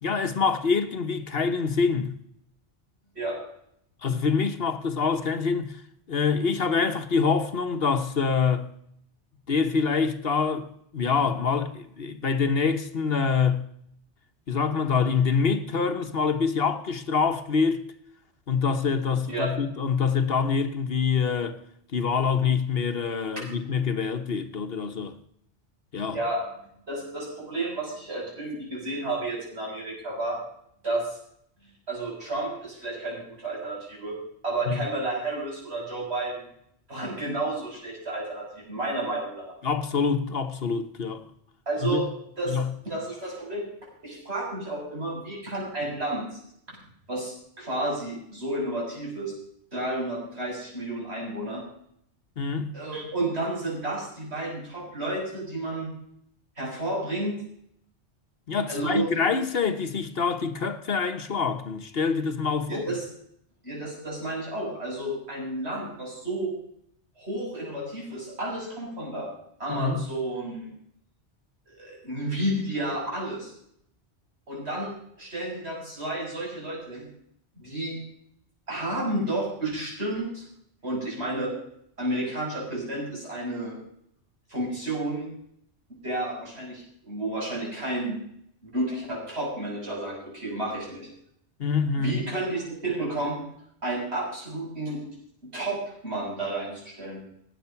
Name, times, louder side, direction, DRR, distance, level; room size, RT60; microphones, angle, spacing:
voice 1, 0.0-2.1 4.0-5.8 6.1-8.7 9.5-10.7 10.9-13.6 14.5-17.8 18.5-21.6 21.9-25.1 25.9-26.2 34.7-34.9 39.6-41.2 41.8-42.0 42.5-42.7 52.4-52.7 58.5-62.9 69.7-70.1 91.6-92.2, left 5 dB, 60° left, 1.3 m, -25 dB
voice 2, 26.1-26.4 26.9-30.4 30.8-31.2 31.9-34.2 34.4-36.5 36.9-39.5 41.7-42.1 42.4-42.6 42.8-43.6 44.0-46.4 47.1-49.3 49.7-51.6 52.7-55.9 56.6-57.4 58.7-59.1 62.7-63.0 63.6-66.5 67.2-69.3 69.6-70.7 71.7-73.5 74.5-77.0 77.6-78.0 78.7-80.5 80.8-81.5 82.0-83.8 84.5-85.3 86.0-88.2 88.6-91.1 92.0-93.4 93.8-95.0 95.4-97.2, right 2 dB, 65° right, 7.5 m, -31 dB
16.5 x 9.9 x 5.8 m
omnidirectional pair, 1.2 m